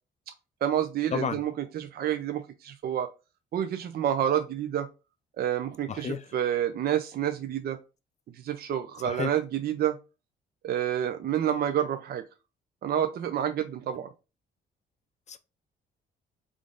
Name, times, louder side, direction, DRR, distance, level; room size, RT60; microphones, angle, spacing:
voice 1, 0.6-3.1 3.5-4.9 5.4-7.8 8.3-10.0 10.6-12.2 12.8-14.1, right 10 dB, 50° right, 0.4 m, -29 dB
voice 2, 5.9-6.2 9.0-9.3 15.3-15.4, left 7 dB, 35° left, 0.5 m, -31 dB
3.6 x 2.4 x 3.7 m
cardioid pair, 90°, 20 cm